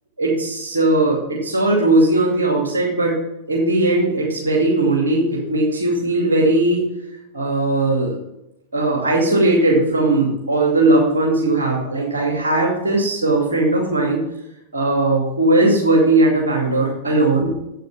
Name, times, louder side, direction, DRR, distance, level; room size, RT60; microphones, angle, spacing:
voice 1, 0.2-3.2 3.5-6.9 7.3-8.2 8.7-14.2 14.7-17.5, right 2 dB, 75° right, -2 dB, 2.4 m, -18 dB
8.9 x 8.2 x 6.0 m, 0.91 s
figure-of-eight pair, 90°, 0 cm